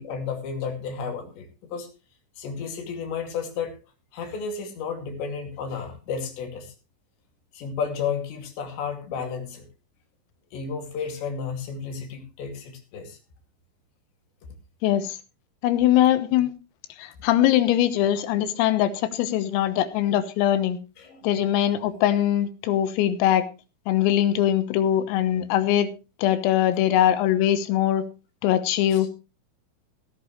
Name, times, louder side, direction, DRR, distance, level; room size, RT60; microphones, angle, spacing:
voice 1, 0.0-1.9 2.4-3.7 4.1-6.7 7.5-9.7 10.5-13.2 21.0-21.2 28.9-29.1, left 6 dB, 60° left, 4 dB, 4.5 m, -32 dB
voice 2, 14.8-15.2 15.6-16.5 17.0-20.8 21.2-23.5 23.9-25.9 26.2-28.0 28.4-29.1, left 12 dB, 85° left, 12 dB, 3.9 m, -22 dB
16.5 x 12.5 x 3.2 m, 0.31 s
omnidirectional pair, 6.0 m